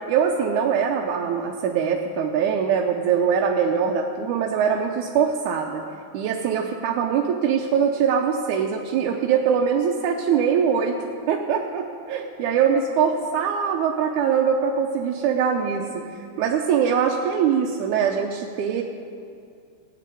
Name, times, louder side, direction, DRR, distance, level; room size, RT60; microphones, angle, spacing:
voice 1, 0.0-5.8 6.1-11.0 11.3-16.1 16.4-18.8, right 7 dB, 75° right, 2 dB, 1.9 m, -22 dB
15.0 x 7.6 x 9.3 m, 2.4 s
omnidirectional pair, 4.2 m